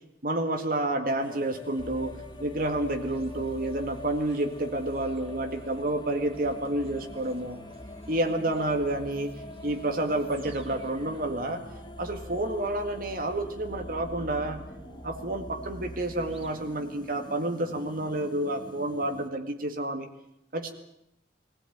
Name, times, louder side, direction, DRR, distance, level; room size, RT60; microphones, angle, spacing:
voice 1, 0.2-7.6 8.1-9.3 9.6-11.6 12.0-14.6 15.0-20.1 20.5-20.7, right 1 dB, 50° right, 5 dB, 2.0 m, -29 dB
sound 1, 1.2-19.3, left 2 dB, 25° left, 1.5 m, -45 dB
sound 2, 1.8-17.4, right 1 dB, 35° right, 3.5 m, -46 dB
21.5 x 17.0 x 9.4 m, 0.79 s
head